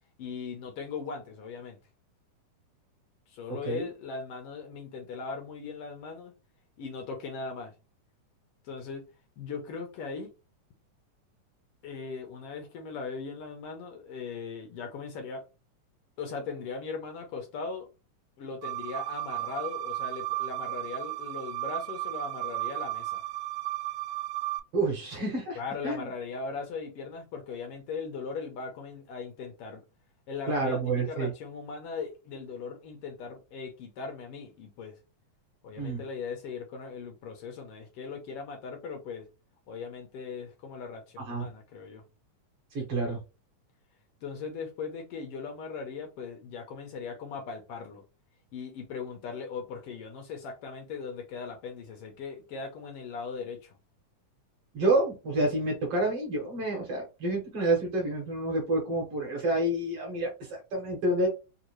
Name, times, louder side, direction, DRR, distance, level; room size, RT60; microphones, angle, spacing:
voice 1, 0.2-1.8 3.3-6.3 6.8-7.7 8.6-9.0 9.4-10.3 11.8-15.4 16.2-17.9 18.4-23.2 25.6-29.8 30.3-34.9 35.6-39.3 39.7-42.0 44.2-48.0 48.5-53.8, left 5 dB, 75° left, 1.4 m, -39 dB
sound 1, 18.6-24.6, right 17 dB, 85° right, 2.1 m, -34 dB
voice 2, 24.7-25.6 25.8-26.1 30.5-31.3 35.8-36.0 41.3-41.5 42.7-43.2 54.7-61.3, right 2 dB, 60° right, 1.8 m, -28 dB
4.9 x 2.4 x 3.1 m
omnidirectional pair, 3.6 m